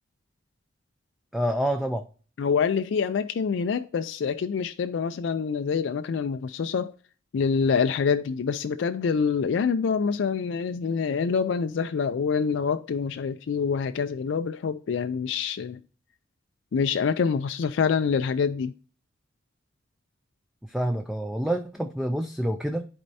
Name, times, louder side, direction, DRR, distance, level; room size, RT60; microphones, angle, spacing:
voice 1, 1.3-2.1 20.6-22.9, right 1 dB, ahead, 0.4 m, -27 dB
voice 2, 2.4-6.9 7.3-15.8 16.7-18.7, left 6 dB, 70° left, 0.4 m, -26 dB
11.0 x 4.4 x 2.7 m
head